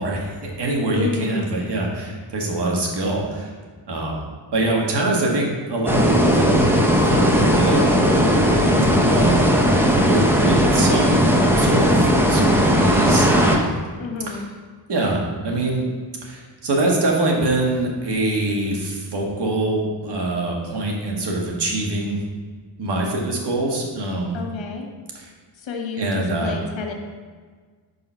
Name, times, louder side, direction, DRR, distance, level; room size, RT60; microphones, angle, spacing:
voice 1, 0.0-3.5 3.9-4.2 4.5-6.6 7.0-7.8 9.0-9.5 10.0-11.2 11.6-13.7 14.3-14.5 14.9-15.9 16.2-22.2 22.8-24.4 25.1-25.3 26.0-26.5, right 2 dB, 60° right, -1 dB, 1.7 m, -24 dB
voice 2, 0.9-1.5 14.0-14.5 24.3-24.9 25.6-26.9, left 4 dB, 80° left, 2 dB, 1.3 m, -30 dB
sound 1, 5.9-13.6, equal, 5° right, 0.8 m, -17 dB
5.6 x 5.2 x 5.6 m, 1.5 s
wide cardioid pair, 110°, 45 cm